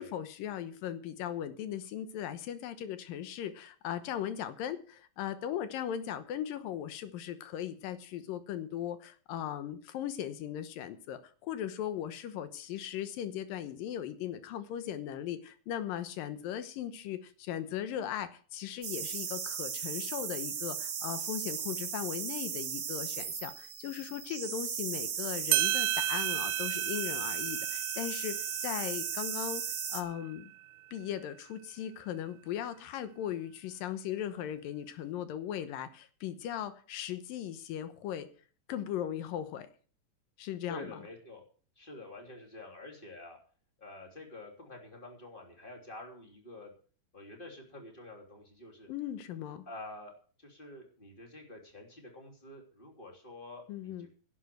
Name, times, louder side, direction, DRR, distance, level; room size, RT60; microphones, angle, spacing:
voice 1, 0.0-28.4 28.6-29.6 29.9-30.5 30.9-38.3 38.7-39.7 40.4-40.9 48.9-49.7 53.7-54.1, left 10 dB, 85° left, 11 dB, 2.8 m, -38 dB
sound 1, 18.8-30.0, right 7 dB, 55° right, 1.3 m, -36 dB
sound 2, 25.2-25.3 25.5-30.6, right 16 dB, 80° right, 2.2 m, -34 dB
voice 2, 40.7-41.4 41.8-43.4 43.8-46.7 47.1-48.9 49.7-50.1 50.4-54.1, left 2 dB, 15° left, 1 dB, 3.0 m, -48 dB
11.0 x 8.4 x 7.8 m, 0.41 s
omnidirectional pair, 3.9 m